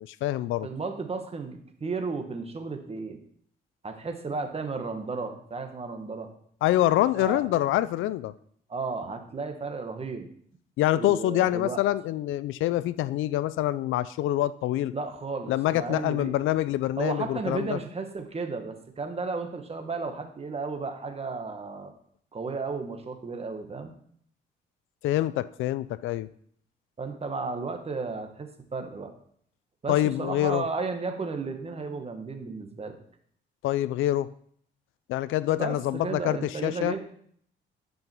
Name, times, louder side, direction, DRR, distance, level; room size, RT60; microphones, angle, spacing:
voice 1, 0.0-0.7 6.6-8.3 10.8-14.9 15.5-17.8 25.0-26.3 29.9-30.6 33.6-34.3 35.1-36.9, left 14 dB, 80° left, 17 dB, 0.4 m, -26 dB
voice 2, 0.6-3.2 3.8-6.3 7.1-7.4 8.7-10.3 10.9-11.8 14.9-16.3 17.0-21.9 22.3-23.9 27.0-29.2 29.8-32.9 35.5-37.0, right 4 dB, 30° right, 5 dB, 1.5 m, -34 dB
11.0 x 5.5 x 4.5 m, 0.63 s
cardioid pair, 90°, 20 cm